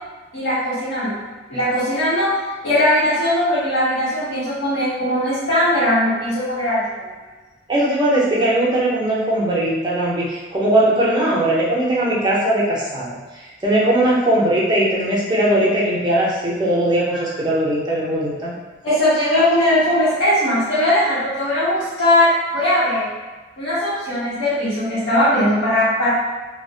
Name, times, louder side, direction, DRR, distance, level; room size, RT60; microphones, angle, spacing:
voice 1, 0.3-1.2 1.5-2.3 2.6-7.1 18.8-23.1 23.6-26.1, left 1 dB, 85° left, -13 dB, 0.8 m, -19 dB
voice 2, 7.7-13.1 13.6-18.5, right 1 dB, 20° right, -6 dB, 0.5 m, -19 dB
2.3 x 2.0 x 2.6 m, 1.3 s
head